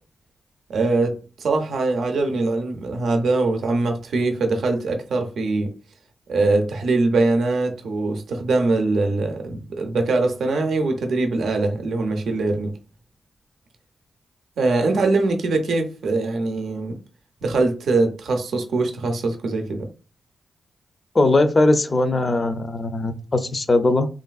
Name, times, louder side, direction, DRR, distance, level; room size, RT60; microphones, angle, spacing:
voice 1, 0.7-5.7 6.3-12.7 14.6-17.0 17.4-19.9, right 3 dB, 85° right, 0.5 m, -22 dB
voice 2, 21.1-24.1, left 2 dB, 40° left, 0.5 m, -19 dB
3.2 x 2.5 x 2.3 m
cardioid pair, 65°, 0 cm